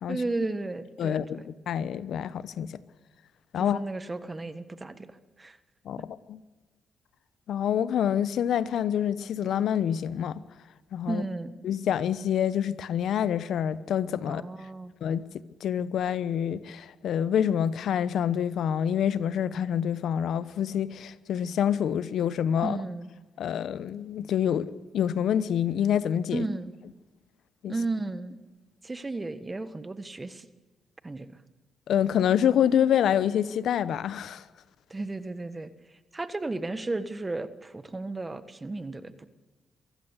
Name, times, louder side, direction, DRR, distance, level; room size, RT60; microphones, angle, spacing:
voice 1, 0.1-1.5 3.6-5.6 11.1-11.6 14.2-14.9 22.6-23.1 26.3-26.7 27.7-28.4 28.8-30.5 31.0-31.4 34.9-35.7 36.1-39.3, right 2 dB, 20° right, 1.4 m, -34 dB
voice 2, 1.0-2.7 3.5-3.8 5.8-6.4 7.5-10.4 10.9-11.2 11.6-14.4 15.0-15.2 15.6-22.8 23.4-26.4 27.6-27.7 31.9-34.4, left 9 dB, 70° left, 0.9 m, -27 dB
23.0 x 15.5 x 8.2 m
cardioid pair, 90°, 0 cm